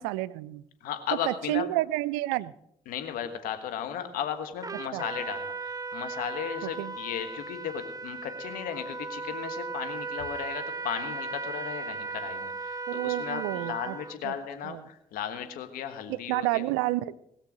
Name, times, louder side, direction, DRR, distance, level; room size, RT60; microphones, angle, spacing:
voice 1, 0.0-0.6 1.2-2.5 4.9-5.0 6.6-6.9 12.9-14.0 14.2-14.3 14.6-14.8 16.1-17.1, right 17 dB, 85° right, 19 dB, 0.4 m, -30 dB
voice 2, 0.8-1.7 2.9-16.7, left 9 dB, 75° left, 7 dB, 1.4 m, -35 dB
Trumpet, 4.6-14.2, right 4 dB, 25° right, 0.9 m, -37 dB
20.0 x 6.7 x 6.1 m, 0.79 s
hypercardioid pair, 40°, 15 cm